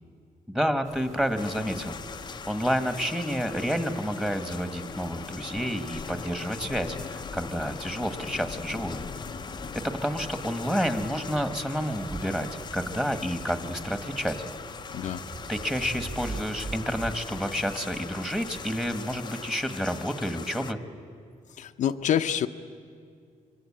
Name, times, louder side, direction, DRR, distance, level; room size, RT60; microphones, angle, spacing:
voice 1, 0.5-2.0 2.5-9.0 9.8-12.5 12.7-14.4 15.5-20.8, equal, 5° right, 9 dB, 1.6 m, -29 dB
sound 1, 0.8-19.2, right 2 dB, 65° right, 4.8 m, -50 dB
sound 2, 1.4-20.7, left 6 dB, 35° left, 0.7 m, -40 dB
sound 3, 4.9-5.2 5.6-6.0 6.5-7.1 7.4-9.0 9.3-9.8 10.9-11.7 12.0-13.0 13.3-14.5 14.9-17.3, right 3 dB, 35° right, 2.6 m, -43 dB
voice 2, 21.6-22.5, left 10 dB, 65° left, 6 dB, 0.8 m, -26 dB
26.0 x 23.0 x 8.8 m, 2.2 s
cardioid pair, 120°, 14 cm